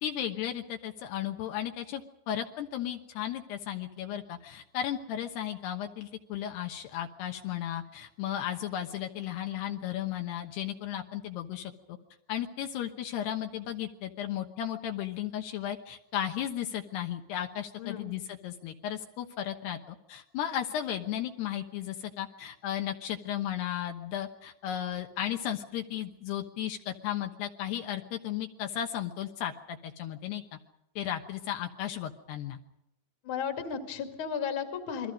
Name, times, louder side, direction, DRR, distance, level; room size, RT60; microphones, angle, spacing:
voice 1, 0.0-12.0 12.3-30.4 31.0-32.6, left 10 dB, 75° left, 4 dB, 3.0 m, -35 dB
voice 2, 33.2-35.1, left 7 dB, 35° left, 5 dB, 2.3 m, -34 dB
28.5 x 22.5 x 5.2 m, 0.82 s
omnidirectional pair, 5.2 m